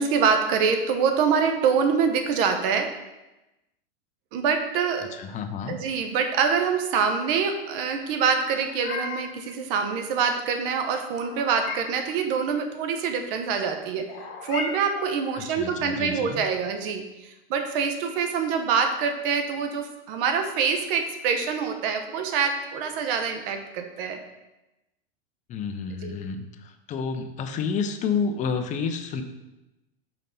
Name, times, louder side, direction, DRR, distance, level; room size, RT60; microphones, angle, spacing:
voice 1, 0.0-2.9 4.3-5.1 5.7-14.1 14.4-24.2 26.0-26.2, right 6 dB, 55° right, 6 dB, 1.0 m, -25 dB
voice 2, 5.2-5.8 15.3-16.4 25.5-29.2, left 5 dB, 25° left, 7 dB, 0.5 m, -30 dB
Meow, 8.5-9.4 11.1-12.0 14.1-15.2, left 4 dB, 55° left, 1.4 m, -36 dB
5.7 x 4.0 x 5.2 m, 0.99 s
supercardioid pair, 135°, 32 cm